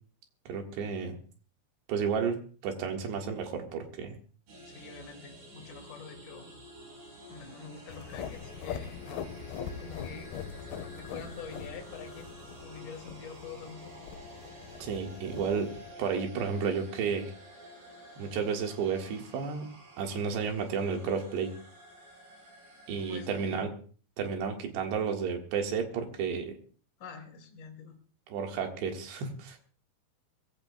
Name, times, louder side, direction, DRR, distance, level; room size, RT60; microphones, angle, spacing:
voice 1, 0.5-1.2 1.9-4.2 14.8-15.7 16.0-17.3 18.2-19.7 20.0-21.5 22.9-23.7 24.2-26.6 28.3-29.6, right 6 dB, 65° right, 3 dB, 3.7 m, -32 dB
sound 1, 4.5-23.6, equal, 50° right, 6.7 m, -50 dB
voice 2, 4.7-6.5 7.3-9.0 9.8-10.3 10.9-12.3 12.6-13.9 23.0-23.4 27.0-28.0, left 6 dB, 45° left, 1 dB, 3.6 m, -46 dB
sound 2, 7.9-15.9, left 8 dB, 75° left, 2.4 m, -42 dB
22.5 x 16.0 x 2.4 m, 0.42 s
omnidirectional pair, 5.6 m